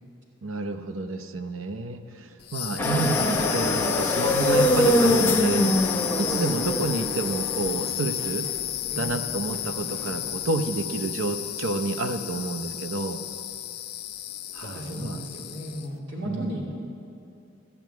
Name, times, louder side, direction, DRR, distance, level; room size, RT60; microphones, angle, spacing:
voice 1, 0.4-5.8 6.2-8.5 9.0-13.2 14.5-15.2 16.2-16.6, right 3 dB, 90° right, 6 dB, 0.7 m, -29 dB
sound 1, 2.4-15.9, left 13 dB, 50° left, 0.5 m, -32 dB
sound 2, 2.8-10.8, left 1 dB, 10° left, 0.7 m, -24 dB
voice 2, 14.6-16.7, right 1 dB, 65° right, -4 dB, 2.8 m, -35 dB
13.0 x 5.8 x 9.2 m, 2.6 s
head